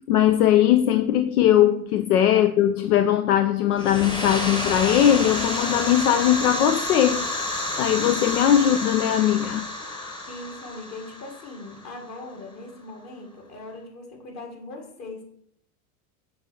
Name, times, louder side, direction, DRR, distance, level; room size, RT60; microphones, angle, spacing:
voice 1, 0.1-7.3 7.8-10.2, left 11 dB, 75° left, 0.5 m, -20 dB
sound 1, 3.7-12.3, left 1 dB, 10° left, 1.0 m, -30 dB
voice 2, 10.3-15.2, left 2 dB, 35° left, 1.7 m, -40 dB
6.5 x 3.8 x 4.4 m
figure-of-eight pair, 80°, 46 cm